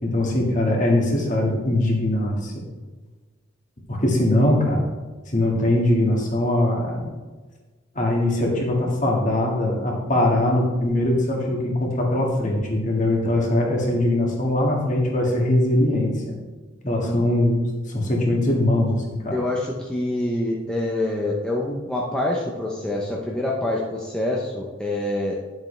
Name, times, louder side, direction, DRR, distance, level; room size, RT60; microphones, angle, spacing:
voice 1, 0.0-2.6 3.9-4.8 5.3-7.1 7.9-16.4 16.8-19.4, left 1 dB, 35° left, -1 dB, 1.9 m, -21 dB
voice 2, 16.8-17.3 19.3-25.4, left 1 dB, 5° left, -4 dB, 0.8 m, -26 dB
10.5 x 7.4 x 3.3 m, 1.3 s
head